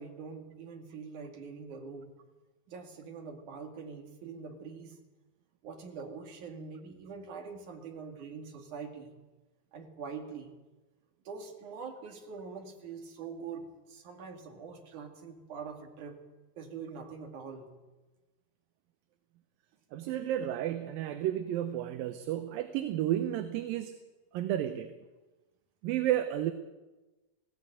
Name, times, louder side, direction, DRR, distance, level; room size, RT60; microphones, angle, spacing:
voice 1, 0.0-2.1 2.7-5.0 5.6-9.2 9.7-10.5 11.3-16.2 16.6-17.8, right 5 dB, 60° right, 4 dB, 3.6 m, -44 dB
voice 2, 19.9-24.0 24.3-24.9 25.8-26.5, right 12 dB, 75° right, 9 dB, 2.6 m, -32 dB
19.5 x 16.0 x 9.0 m, 1.2 s
omnidirectional pair, 4.2 m